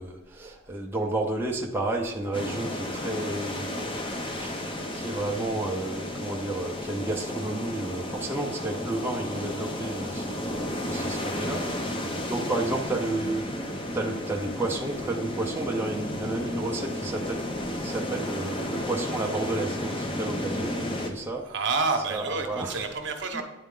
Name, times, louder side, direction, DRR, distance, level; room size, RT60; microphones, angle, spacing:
voice 1, 0.0-4.1 4.4-21.4 22.1-22.8 23.3-23.4, right 2 dB, 10° right, -1 dB, 0.6 m, -32 dB
sound 1, 2.3-21.1, left 1 dB, 25° left, 0.7 m, -33 dB
voice 2, 21.4-23.4, right 4 dB, 60° right, 4 dB, 0.9 m, -28 dB
9.3 x 4.3 x 3.7 m, 1.1 s
head